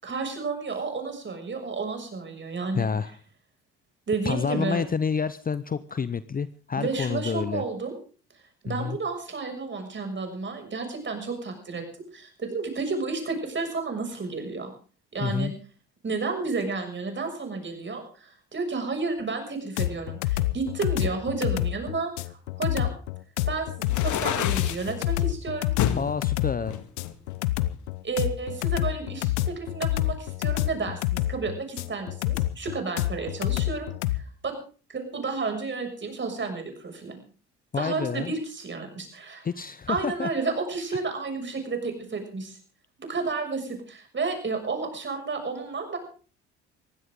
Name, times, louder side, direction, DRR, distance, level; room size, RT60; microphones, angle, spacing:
voice 1, 0.0-2.9 4.1-4.8 6.7-8.0 8.6-11.8 12.1-14.7 15.1-15.5 16.0-22.9 23.5-25.7 28.0-34.5 34.9-37.2 37.8-39.5 39.9-42.6 43.0-46.0, right 4 dB, 35° right, 4 dB, 6.7 m, -31 dB
voice 2, 2.7-3.1 4.2-7.6 8.7-9.0 15.2-15.5 26.0-26.8 37.7-38.3 39.4-40.3, left 6 dB, 25° left, 15 dB, 0.8 m, -28 dB
sound 1, 19.8-34.2, left 16 dB, 85° left, 0.8 m, -27 dB
sound 2, 23.8-24.9 25.8-26.1 26.7-27.8, left 10 dB, 60° left, 2.0 m, -29 dB
21.0 x 16.0 x 3.8 m, 0.40 s
hypercardioid pair, 60°, 34 cm